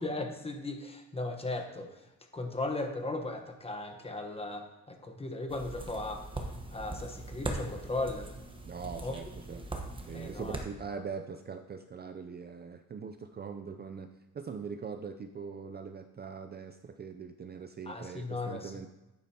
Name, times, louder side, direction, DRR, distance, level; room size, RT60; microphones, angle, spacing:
voice 1, 0.0-1.9 2.3-6.3 6.7-8.3 9.0-9.1 10.1-10.6 10.9-11.0 17.9-18.7, left 2 dB, 20° left, 4 dB, 1.1 m, -37 dB
sound 1, 5.5-10.6, right 2 dB, 15° right, 1.1 m, -40 dB
voice 2, 8.6-9.7 10.1-18.9, right 5 dB, 30° right, 7 dB, 0.5 m, -42 dB
10.5 x 9.4 x 2.9 m, 1.0 s
cardioid pair, 135°, 31 cm